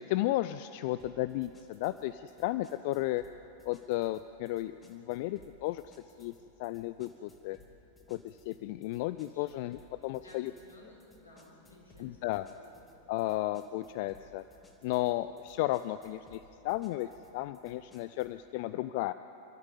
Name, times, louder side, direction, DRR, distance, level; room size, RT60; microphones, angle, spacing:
voice 1, 0.0-3.3 3.6-6.3 6.6-7.6 8.1-10.5 12.0-12.5 13.1-14.4 14.8-19.1, left 16 dB, 50° left, 13 dB, 0.5 m, -34 dB
sound 1, 1.0-18.4, left 1 dB, 15° left, 3.0 m, -62 dB
voice 2, 10.2-12.2 12.6-12.7, left 2 dB, 80° left, -3 dB, 5.3 m, -56 dB
27.5 x 13.5 x 9.9 m, 3.0 s
figure-of-eight pair, 90°, 0 cm